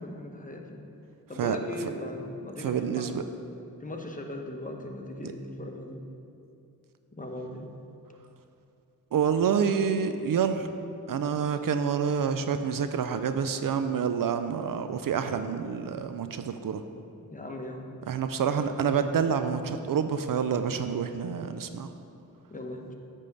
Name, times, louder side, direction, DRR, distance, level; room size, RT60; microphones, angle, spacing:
voice 1, 0.0-0.9 1.3-3.1 3.8-6.0 7.1-7.7 17.3-17.9 22.5-22.9, left 1 dB, 20° left, 2 dB, 1.0 m, -38 dB
voice 2, 1.4-1.9 2.6-3.2 5.2-5.3 9.1-10.7 11.1-16.8 18.1-21.9, right 7 dB, 65° right, 9 dB, 0.5 m, -28 dB
9.1 x 3.7 x 6.7 m, 2.6 s
cardioid pair, 60°, 37 cm